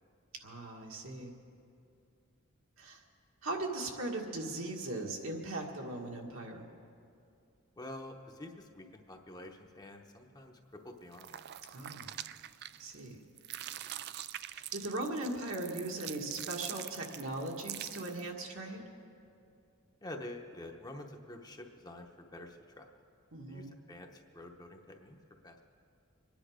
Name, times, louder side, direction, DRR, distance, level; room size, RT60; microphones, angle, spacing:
voice 1, 0.4-1.3 2.8-3.0 3.4-6.7 11.7-12.1 12.8-13.2 14.5-18.8 23.3-23.7, right 2 dB, 70° right, 1 dB, 1.7 m, -39 dB
voice 2, 7.8-11.4 20.0-23.0 23.5-25.2 25.4-25.6, left 1 dB, 20° left, 3 dB, 0.9 m, -48 dB
sound 1, 11.1-13.1 13.4-18.3, right 12 dB, 50° right, 0.3 m, -44 dB
24.5 x 10.0 x 5.0 m, 2.5 s
head